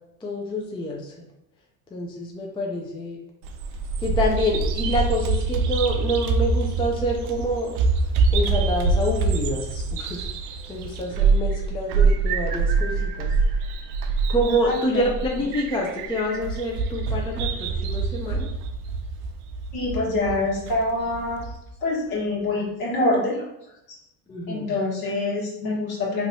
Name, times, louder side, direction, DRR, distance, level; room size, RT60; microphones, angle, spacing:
voice 1, 0.2-1.1 1.9-3.2 4.0-7.7 8.3-10.3 10.7-13.4 14.3-18.5 24.3-24.8, equal, 10° left, -1 dB, 0.4 m, -27 dB
Bird vocalization bird call bird song, 3.4-21.6, right 4 dB, 75° right, 0.5 m, -25 dB
voice 2, 14.6-15.0 19.7-21.4 21.8-23.4 24.5-26.3, left 2 dB, 60° left, -3 dB, 1.3 m, -25 dB
3.2 x 2.9 x 2.6 m, 0.87 s
supercardioid pair, 95°, 42 cm